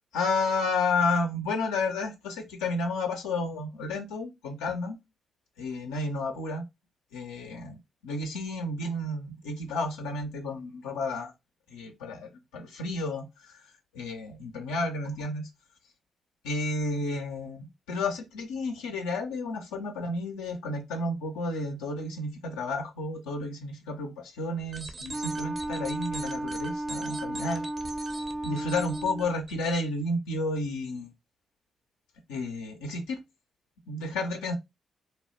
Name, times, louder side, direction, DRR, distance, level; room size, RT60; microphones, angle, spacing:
voice 1, 0.1-5.0 5.6-6.6 7.1-7.8 8.0-11.3 11.7-15.5 16.4-27.7 28.4-31.1 32.3-33.2 33.9-34.5, left 2 dB, 90° left, 0.4 m, -31 dB
sound 1, 24.6-29.7, right 3 dB, 50° right, 0.6 m, -42 dB
Wind instrument woodwind instrument, 25.1-29.3, right 1 dB, 10° right, 0.3 m, -34 dB
2.8 x 2.0 x 2.9 m
hypercardioid pair, 45°, 0 cm